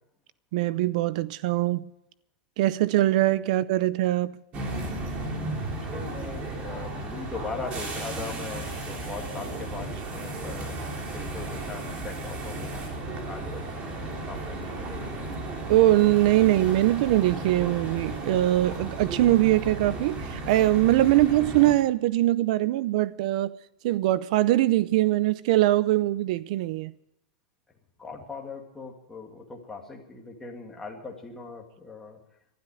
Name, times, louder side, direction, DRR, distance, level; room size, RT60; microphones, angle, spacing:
voice 1, 0.5-1.9 2.6-4.4 15.7-23.5 23.8-26.9, right 15 dB, 55° right, 0.5 m, -22 dB
sound 1, 4.5-21.7, right 2 dB, 25° right, 3.3 m, -34 dB
voice 2, 5.7-10.8 11.1-12.9 13.2-14.0 14.3-15.3 28.0-32.2, left 4 dB, 5° left, 2.3 m, -40 dB
21.5 x 12.0 x 4.9 m
supercardioid pair, 155°, 5 cm